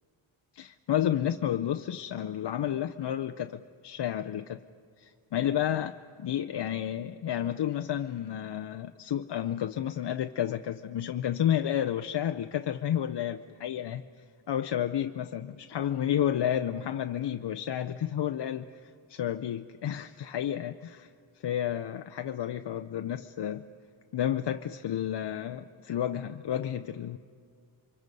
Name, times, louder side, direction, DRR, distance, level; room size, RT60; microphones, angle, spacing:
voice 1, 0.5-4.6 5.0-14.0 14.5-21.1 21.4-23.6 24.1-27.2, left 10 dB, 60° left, 8 dB, 0.7 m, -31 dB
29.0 x 24.5 x 5.4 m, 2.3 s
wide cardioid pair, 115°, 48 cm